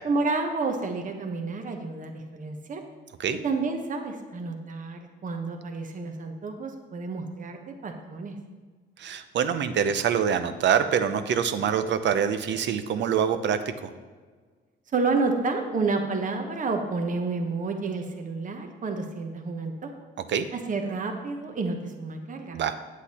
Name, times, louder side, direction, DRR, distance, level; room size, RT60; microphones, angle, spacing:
voice 1, 0.0-2.8 3.4-8.4 14.9-19.9 20.5-22.6, right 3 dB, 40° right, 4 dB, 1.0 m, -30 dB
voice 2, 9.0-13.9 20.3-20.5 22.5-22.7, right 8 dB, 65° right, 10 dB, 0.7 m, -25 dB
8.2 x 8.1 x 4.3 m, 1.5 s
cardioid pair, 90°, 20 cm